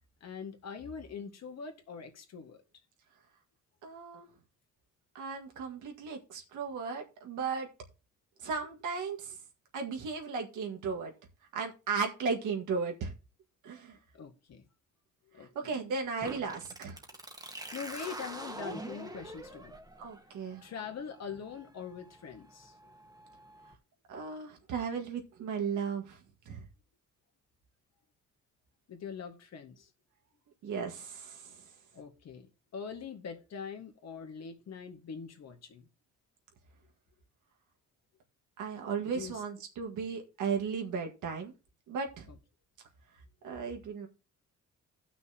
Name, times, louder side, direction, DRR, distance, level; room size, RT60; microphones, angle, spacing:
voice 1, 0.2-2.6 14.1-14.7 15.3-15.8 17.7-19.8 20.6-22.7 28.9-29.9 31.9-35.9 39.1-39.4 42.3-42.4, left 6 dB, 60° left, 1.8 m, -43 dB
voice 2, 3.8-4.3 5.2-7.7 8.4-9.4 9.7-11.1 11.5-13.1 13.6-14.0 15.6-17.0 20.0-20.6 24.1-26.2 26.5-26.6 30.6-31.6 38.6-41.5 41.9-42.2 43.4-44.1, right 5 dB, 80° right, 1.9 m, -35 dB
sound 1, 16.2-23.7, right 1 dB, 15° right, 1.4 m, -46 dB
17.0 x 6.0 x 2.9 m
cardioid pair, 90°, 30 cm